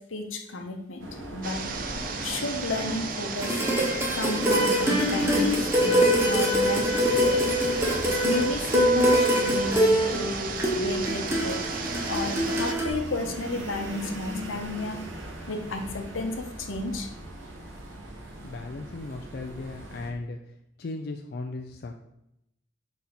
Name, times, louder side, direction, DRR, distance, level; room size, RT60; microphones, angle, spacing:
voice 1, 0.1-1.7 2.2-3.6 4.1-6.9 7.2-7.4 8.2-10.4 10.7-11.6 12.1-15.0 15.5-17.1, left 2 dB, 80° left, 4 dB, 0.9 m, -32 dB
sound 1, 1.0-20.1, right 1 dB, 80° right, 1.1 m, -40 dB
sound 2, 1.4-12.7, right 4 dB, 45° right, 0.6 m, -34 dB
sound 3, 3.4-12.9, equal, 15° right, 1.0 m, -24 dB
voice 2, 18.4-20.4 20.8-21.9, left 3 dB, 50° left, 3 dB, 0.4 m, -36 dB
5.9 x 4.1 x 3.9 m, 0.81 s
head